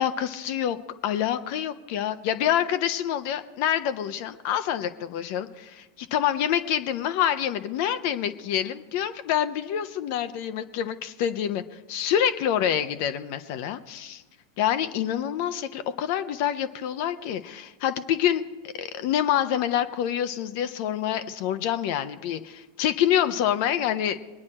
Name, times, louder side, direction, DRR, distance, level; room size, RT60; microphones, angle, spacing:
voice 1, 0.0-14.2 14.6-24.2, left 10 dB, 55° left, 11 dB, 0.7 m, -27 dB
22.0 x 9.7 x 4.3 m, 1.2 s
figure-of-eight pair, 90°, 0 cm